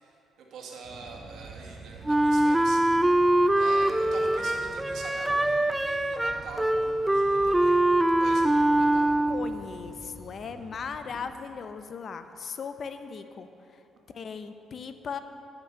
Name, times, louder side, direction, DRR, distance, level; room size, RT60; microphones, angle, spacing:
voice 1, 0.0-3.1 3.5-7.8 8.2-9.1, right 4 dB, 75° right, -1 dB, 1.8 m, -44 dB
sound 1, 0.8-11.3, right 3 dB, 50° right, 1.5 m, -47 dB
Wind instrument woodwind instrument, 2.1-9.6, right 1 dB, 10° right, 0.3 m, -23 dB
voice 2, 9.3-13.8 14.1-15.2, left 6 dB, 50° left, 9 dB, 0.6 m, -38 dB
11.5 x 6.0 x 6.7 m, 2.9 s
cardioid pair, 90°, 0 cm